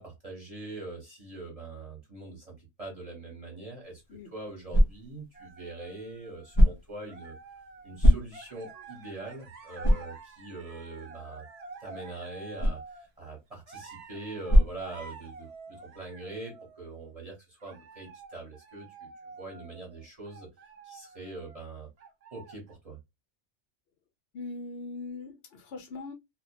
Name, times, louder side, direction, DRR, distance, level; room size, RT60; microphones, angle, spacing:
voice 1, 0.0-4.0 4.3-7.4 7.8-11.4 11.8-19.1 19.4-20.5 20.8-21.9 22.3-23.0, right 2 dB, 35° right, 0.9 m, -43 dB
sound 1, 3.8-15.6, equal, 40° left, 0.4 m, -28 dB
sound 2, 5.3-6.7 7.1-8.0 8.3-13.1 13.7-17.0 17.6-21.7 22.0-22.7, right 4 dB, 60° right, 0.4 m, -49 dB
voice 2, 24.3-26.1, left 3 dB, 65° left, 0.7 m, -40 dB
2.2 x 2.1 x 2.7 m
omnidirectional pair, 1.2 m